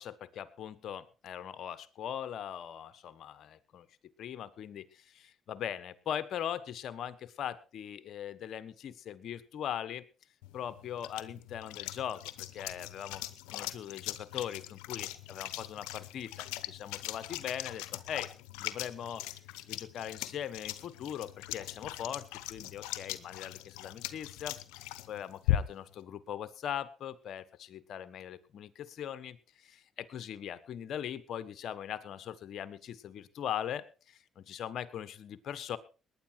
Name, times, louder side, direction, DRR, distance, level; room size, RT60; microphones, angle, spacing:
voice 1, 0.4-3.9 4.2-10.0 10.5-13.2 13.5-18.3 18.6-19.2 19.7-35.8, left 9 dB, 65° left, 13 dB, 1.3 m, -40 dB
sound 1, 10.4-26.0, left 14 dB, 90° left, 0.9 m, -40 dB
19.5 x 10.0 x 4.6 m, 0.34 s
supercardioid pair, 70°, 0 cm